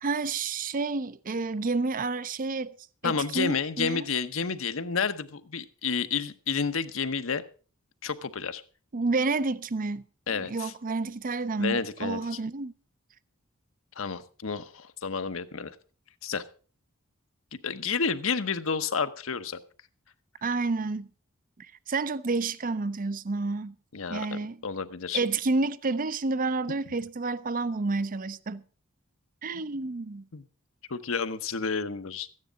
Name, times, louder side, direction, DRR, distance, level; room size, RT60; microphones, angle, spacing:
voice 1, 0.0-2.7 3.0-4.1 8.9-12.7 20.4-21.1 21.6-23.8 24.1-24.6 25.1-28.6 29.4-30.3, right 3 dB, 40° right, 0.6 m, -30 dB
voice 2, 3.0-7.4 8.0-8.6 10.3-10.7 11.6-12.4 14.0-15.7 16.2-16.4 17.6-19.6 23.9-25.2 30.3-30.4 30.9-32.3, left 5 dB, 70° left, 0.9 m, -30 dB
14.0 x 9.7 x 5.1 m
head